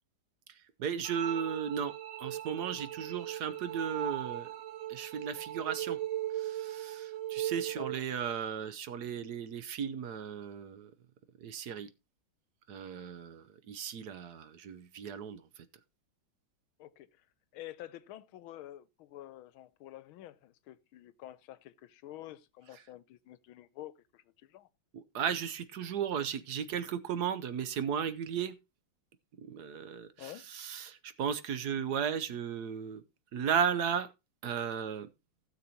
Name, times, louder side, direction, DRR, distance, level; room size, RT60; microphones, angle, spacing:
voice 1, 0.5-4.5 4.9-6.0 6.3-10.9 11.4-11.9 12.7-15.6 24.9-28.6 29.4-33.0 33.3-34.1 34.4-35.1, right 7 dB, 60° right, 1.1 m, -35 dB
sound 1, 1.0-8.0, right 13 dB, 80° right, 1.7 m, -38 dB
voice 2, 16.8-17.3 17.5-24.7 30.2-30.5, left 14 dB, 85° left, 1.5 m, -49 dB
16.0 x 6.9 x 2.8 m
omnidirectional pair, 2.2 m